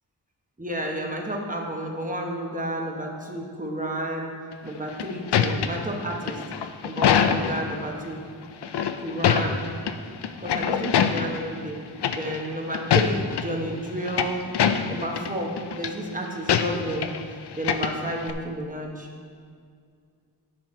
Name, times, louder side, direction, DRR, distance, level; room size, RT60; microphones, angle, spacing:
voice 1, 0.6-4.3 4.6-6.4 6.8-8.2 9.0-9.6 10.4-11.8 12.2-14.4 14.9-17.1 17.5-19.1, right 1 dB, 20° right, 0 dB, 1.1 m, -31 dB
sound 1, 4.7-7.7 8.6-9.9 10.2-11.5 12.0-12.5 12.7-13.4 13.9-15.3 15.6-15.9 16.5-17.2 17.5-18.3, left 8 dB, 80° left, 0.5 m, -24 dB
9.5 x 5.8 x 4.4 m, 2.2 s
wide cardioid pair, 105°, 40 cm